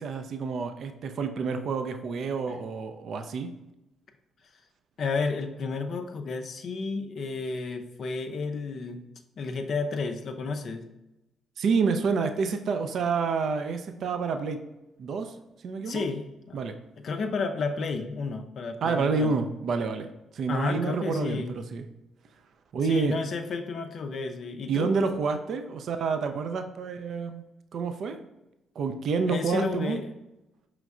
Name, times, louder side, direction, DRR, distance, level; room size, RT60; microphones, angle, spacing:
voice 1, 0.0-3.5 11.6-14.6 15.0-15.4 15.6-16.0 16.5-16.7 18.8-20.1 20.3-21.9 22.7-23.2 24.7-27.4 27.7-28.2 28.8-30.0, right 5 dB, 60° right, 7 dB, 0.3 m, -28 dB
voice 2, 5.0-9.0 9.4-10.8 15.9-16.6 17.0-19.3 20.5-21.5 22.8-24.9 29.3-30.0, left 4 dB, 55° left, 6 dB, 0.4 m, -31 dB
4.9 x 3.1 x 2.4 m, 0.95 s
hypercardioid pair, 45°, 0 cm